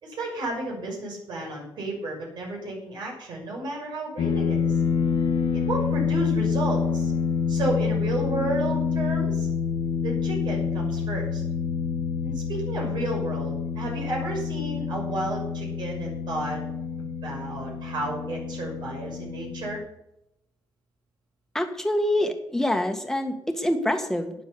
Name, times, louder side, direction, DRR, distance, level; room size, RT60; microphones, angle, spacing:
voice 1, 0.0-4.7 5.5-7.1 7.5-9.5 10.0-11.4 12.2-16.6 17.2-19.8, right 2 dB, 70° right, 0 dB, 6.0 m, -32 dB
sound 1, 4.2-19.8, left 6 dB, 85° left, 1.5 m, -27 dB
voice 2, 21.5-24.3, left 1 dB, 5° left, 5 dB, 1.7 m, -25 dB
12.5 x 10.0 x 7.0 m, 0.82 s
wide cardioid pair, 155°, 8 cm